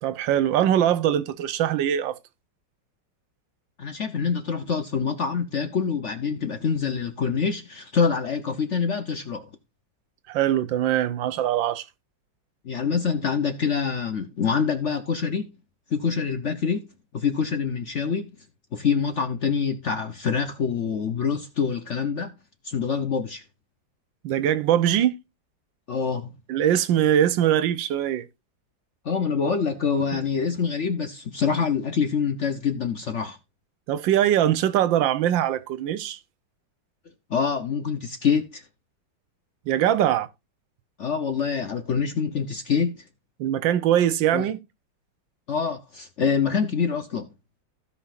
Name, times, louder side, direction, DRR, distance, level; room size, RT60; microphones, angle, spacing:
voice 1, 0.0-2.2 10.3-11.8 24.2-25.1 26.5-28.3 30.1-30.2 33.9-36.2 39.7-40.3 43.4-44.6, right 11 dB, 80° right, 1.5 m, -22 dB
voice 2, 3.8-9.5 12.6-15.5 15.9-16.9 17.1-18.3 18.7-22.3 22.6-23.4 25.9-26.3 29.0-33.4 37.3-38.6 41.0-43.0 44.3-44.5 45.5-47.3, left 6 dB, 55° left, 0.9 m, -25 dB
16.0 x 5.6 x 2.5 m
omnidirectional pair, 2.1 m